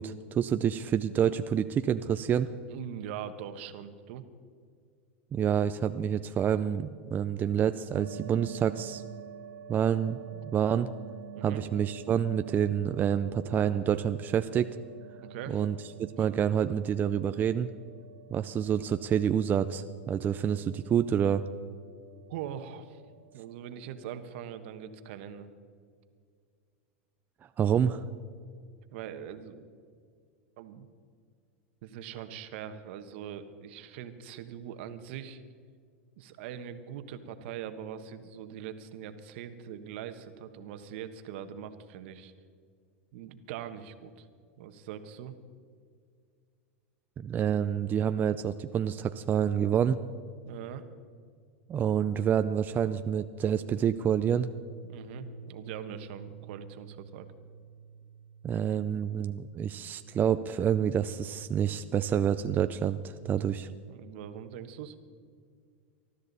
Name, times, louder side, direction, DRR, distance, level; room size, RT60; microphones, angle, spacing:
voice 1, 0.0-2.5 5.3-9.0 9.7-10.2 10.5-10.9 11.4-14.8 15.5-15.7 16.0-17.7 18.3-21.4 27.6-28.0 47.2-50.0 51.7-54.5 58.4-63.7, right 8 dB, 30° right, 10 dB, 0.5 m, -28 dB
voice 2, 2.7-4.2 11.3-11.6 15.2-15.6 16.2-16.3 22.3-23.0 23.3-25.5 28.9-29.7 30.6-30.9 31.8-35.4 36.2-42.3 43.1-44.3 44.6-45.4 50.5-50.9 54.8-57.3 63.3-63.4 63.9-65.0, right 9 dB, 65° right, 10 dB, 1.3 m, -42 dB
sound 1, 7.9-25.2, right 11 dB, 85° right, 0.9 m, -48 dB
sound 2, 54.4-61.4, right 5 dB, 80° left, 2.8 m, -51 dB
20.5 x 13.0 x 4.1 m, 2.1 s
hypercardioid pair, 110°, 7 cm